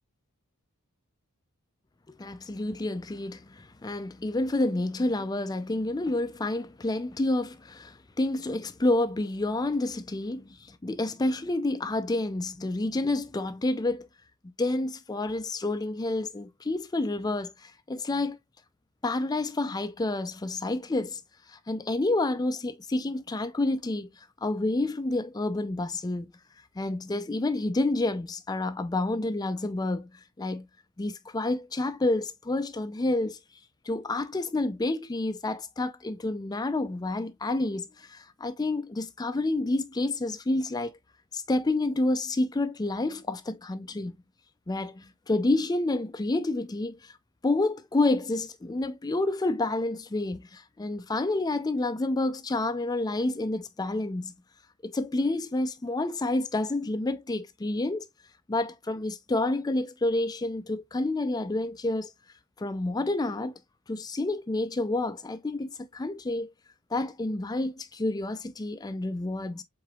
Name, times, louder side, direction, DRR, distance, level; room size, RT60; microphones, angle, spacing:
voice 1, 2.2-14.1 14.6-18.4 19.0-21.2 21.5-24.1 24.4-26.3 26.8-30.7 31.0-33.4 33.9-40.9 41.3-44.2 44.7-47.1 47.4-54.3 54.8-58.1 58.5-62.1 62.6-63.5 63.9-66.5 66.9-69.6, left 2 dB, 15° left, 0.4 m, -29 dB
4.9 x 3.9 x 2.3 m
head